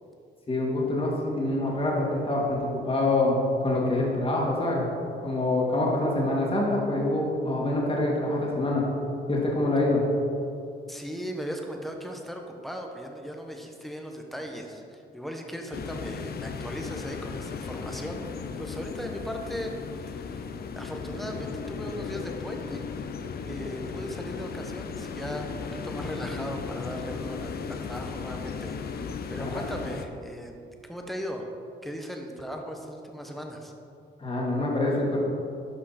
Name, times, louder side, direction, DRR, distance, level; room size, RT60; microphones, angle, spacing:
voice 1, 0.5-4.9 5.2-8.8 9.3-10.0 29.4-29.6 34.2-35.2, left 2 dB, 30° left, -3 dB, 2.2 m, -25 dB
voice 2, 10.9-20.4 20.7-22.8 23.4-28.8 29.3-30.6 30.8-31.5 31.8-33.7, equal, ahead, 2 dB, 1.1 m, -38 dB
sound 1, 15.7-30.1, left 5 dB, 50° left, 0.7 m, -36 dB
11.0 x 5.6 x 4.3 m, 2.6 s
cardioid pair, 90°, 20 cm